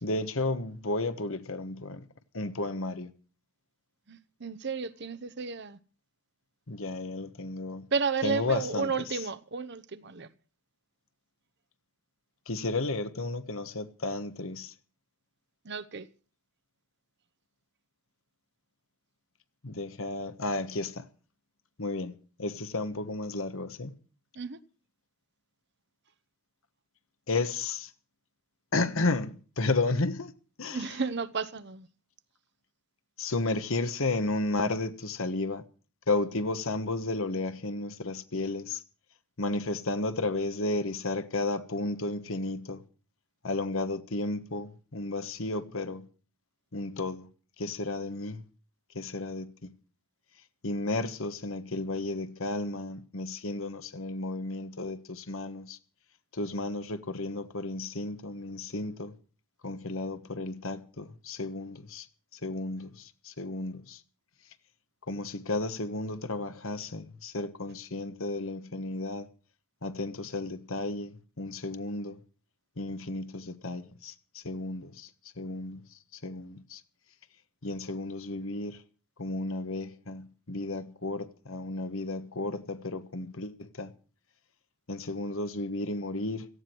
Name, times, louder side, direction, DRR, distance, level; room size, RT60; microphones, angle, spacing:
voice 1, 0.0-2.1 2.3-3.1 6.7-7.9 8.2-8.9 12.5-14.7 19.6-21.0 21.8-23.9 27.3-27.9 28.7-30.3 30.6-30.9 33.2-35.6 36.1-38.8 39.4-42.8 43.4-46.1 46.7-47.3 47.6-48.4 48.9-49.7 50.6-55.8 56.3-59.1 59.6-62.0 62.4-64.0 65.1-69.3 69.8-72.2 72.8-74.1 74.4-75.1 75.4-75.8 76.2-76.8 77.6-78.8 79.2-83.9 84.9-86.5, left 2 dB, 65° left, 1.3 m, -33 dB
voice 2, 4.1-5.8 7.9-10.3 15.6-16.1 24.4-24.6 30.7-31.9, right 5 dB, 50° right, 0.9 m, -32 dB
17.5 x 15.0 x 4.5 m
head